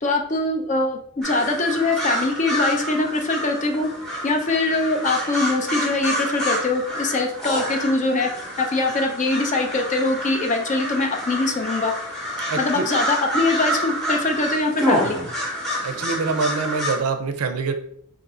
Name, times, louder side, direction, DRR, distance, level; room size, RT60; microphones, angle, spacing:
voice 1, 0.0-3.9 4.2-8.3 8.6-11.9 12.6-15.2, left 2 dB, 35° left, 4 dB, 0.4 m, -22 dB
sound 1, 1.2-17.0, equal, ahead, 0.7 m, -28 dB
voice 2, 12.5-12.9 15.8-17.7, right 4 dB, 80° right, 7 dB, 0.4 m, -25 dB
2.7 x 2.5 x 4.1 m, 0.66 s
head